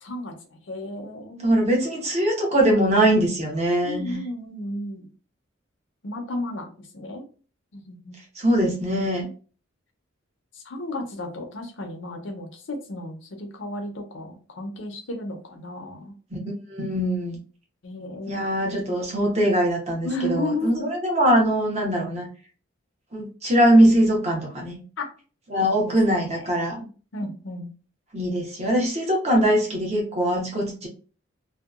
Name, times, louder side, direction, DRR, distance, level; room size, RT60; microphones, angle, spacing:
voice 1, 0.0-1.6 3.8-5.1 6.0-7.2 7.7-8.2 10.5-16.2 17.8-18.5 20.0-20.9 25.0-25.1 25.6-26.5 27.1-27.7, left 1 dB, 65° left, 4 dB, 0.6 m, -33 dB
voice 2, 1.4-4.2 8.3-9.3 16.3-16.4 16.7-17.4 18.3-22.3 23.1-24.8 25.5-26.9 28.1-30.9, right 1 dB, 30° right, 0 dB, 0.8 m, -22 dB
2.7 x 2.2 x 2.4 m, 0.38 s
head